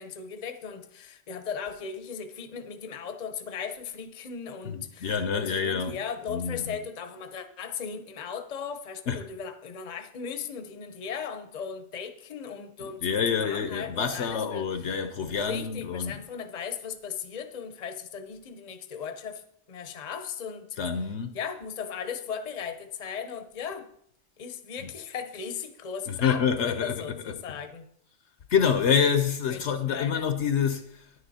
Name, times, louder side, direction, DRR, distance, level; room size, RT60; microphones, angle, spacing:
voice 1, 0.0-14.7 15.3-20.7 21.3-23.9 24.4-27.9 29.5-30.3, left 7 dB, 35° left, 0.8 m, -37 dB
voice 2, 4.6-6.0 6.3-6.8 9.1-9.3 12.8-16.2 20.8-21.4 24.8-24.9 26.1-27.0 28.5-31.1, left 7 dB, 60° left, 1.0 m, -27 dB
10.0 x 9.6 x 4.2 m
omnidirectional pair, 1.4 m